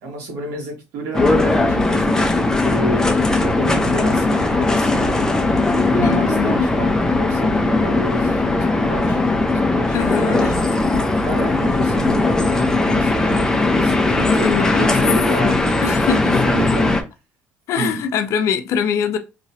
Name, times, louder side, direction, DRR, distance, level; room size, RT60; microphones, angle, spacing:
voice 1, 0.0-3.1 3.4-5.3 5.9-10.6 11.2-16.9 17.8-18.0, right 1 dB, 85° right, 1.6 m, -29 dB
sound 1, 1.1-17.0, left 2 dB, 10° left, 0.6 m, -18 dB
voice 2, 6.0-6.7 9.9-10.5 14.3-15.1 15.5-16.7 17.7-19.2, left 7 dB, 70° left, 0.6 m, -23 dB
3.1 x 2.8 x 2.7 m
cardioid pair, 100°, 5 cm